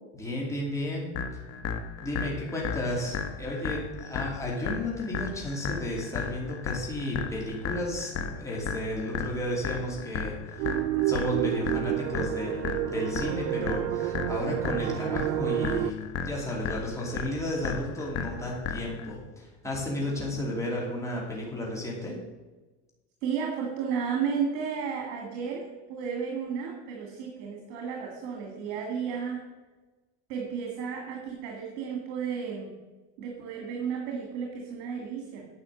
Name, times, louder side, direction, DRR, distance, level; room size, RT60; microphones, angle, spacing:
voice 1, 0.1-1.1 2.0-10.7 11.0-15.9 16.2-22.2, left 1 dB, 10° left, -3 dB, 2.7 m, -33 dB
sound 1, 1.1-19.1, left 6 dB, 45° left, 1.2 m, -35 dB
sound 2, 10.6-15.9, right 14 dB, 90° right, 0.6 m, -29 dB
voice 2, 23.2-29.5 30.3-32.7 33.2-35.5, right 6 dB, 75° right, 1 dB, 2.1 m, -33 dB
9.6 x 5.7 x 7.8 m, 1.2 s
cardioid pair, 135°, 35 cm